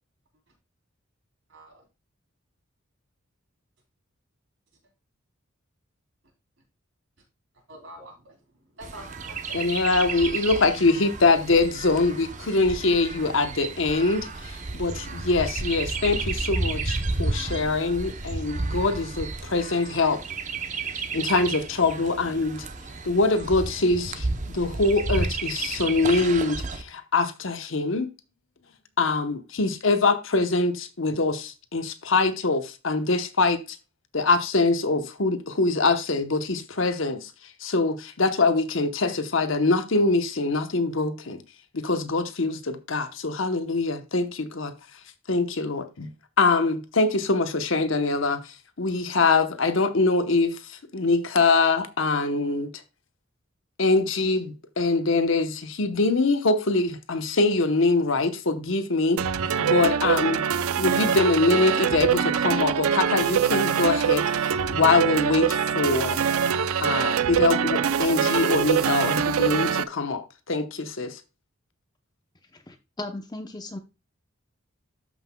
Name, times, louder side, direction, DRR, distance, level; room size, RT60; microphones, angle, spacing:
voice 1, 1.5-1.8 7.7-9.8, right 1 dB, 60° right, 3.6 m, -46 dB
Chirp tweet, 8.8-26.8, right 3 dB, 35° right, 0.7 m, -32 dB
voice 2, 9.5-20.2 21.1-22.7 23.0-28.1 29.0-33.8 34.1-37.3 37.6-41.4 41.7-44.7 45.3-46.1 46.4-52.7 53.8-59.2 59.6-60.4 60.8-64.2 64.7-66.2 66.8-71.2, left 3 dB, 65° left, 0.9 m, -24 dB
sound 1, 59.2-69.8, right 8 dB, 90° right, 0.5 m, -24 dB
voice 3, 72.7-73.8, left 2 dB, 20° left, 0.7 m, -36 dB
13.0 x 5.8 x 2.2 m
head